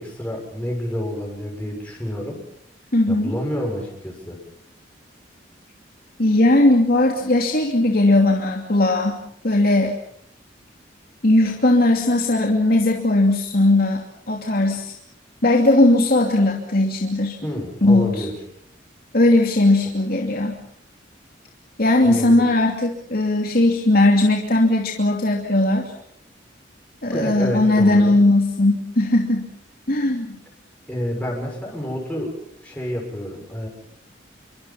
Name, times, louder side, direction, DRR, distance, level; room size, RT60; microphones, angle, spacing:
voice 1, 0.0-2.4 3.1-4.4 17.4-18.3 22.0-22.5 27.1-28.1 30.9-32.4 32.6-33.7, equal, 10° left, -1 dB, 6.9 m, -28 dB
voice 2, 2.9-3.4 6.2-9.2 9.4-10.0 11.2-14.9 15.4-17.4 17.8-18.3 19.1-20.6 21.8-25.9 27.0-29.5 29.9-30.4, left 2 dB, 55° left, 1 dB, 2.8 m, -18 dB
28.5 x 24.0 x 5.7 m, 0.68 s
head